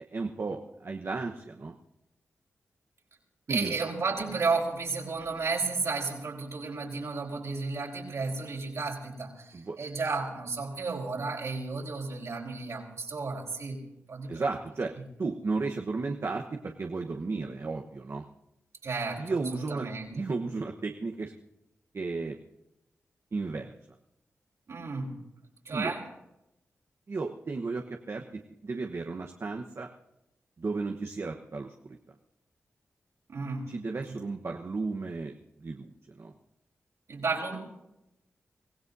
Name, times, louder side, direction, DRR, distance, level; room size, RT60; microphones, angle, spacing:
voice 1, 0.0-1.7 3.5-3.7 9.5-9.8 14.3-14.9 15.2-18.2 19.2-19.9 20.1-21.3 21.9-22.4 23.3-23.7 25.7-25.9 27.1-29.9 30.6-32.0 33.7-35.3 35.6-35.9 36.2-36.3, right 3 dB, 55° right, 2 dB, 1.1 m, -34 dB
voice 2, 3.5-14.5 18.8-20.3 24.7-25.2 25.6-26.0 33.3-33.7 34.1-34.2 37.1-37.6, right 4 dB, 70° right, -1 dB, 4.3 m, -33 dB
24.5 x 16.5 x 2.7 m, 0.88 s
cardioid pair, 50°, 5 cm